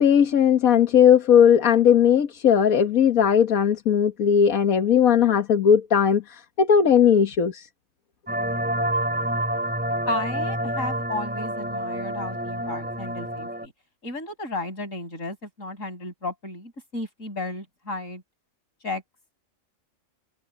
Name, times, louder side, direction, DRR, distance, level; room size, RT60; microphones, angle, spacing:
voice 1, 0.0-7.7, left 8 dB, 90° left, 1.8 m, -18 dB
sound 1, 8.3-13.7, right 1 dB, 5° right, 3.8 m, -28 dB
voice 2, 10.1-13.7 14.0-18.2 18.8-19.0, left 2 dB, 70° left, 7.4 m, -33 dB
omnidirectional pair, 1.4 m